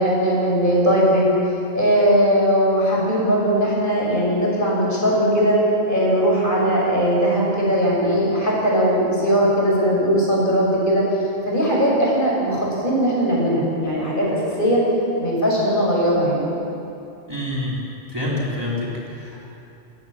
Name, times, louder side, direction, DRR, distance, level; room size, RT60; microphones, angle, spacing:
voice 1, 0.0-5.6 5.9-11.0 11.4-14.8 15.2-16.5, equal, 45° left, -4 dB, 6.7 m, -19 dB
voice 2, 17.3-17.8 18.1-19.4, left 1 dB, 20° right, -6 dB, 4.1 m, -27 dB
28.5 x 15.0 x 7.5 m, 2.8 s
omnidirectional pair, 1.2 m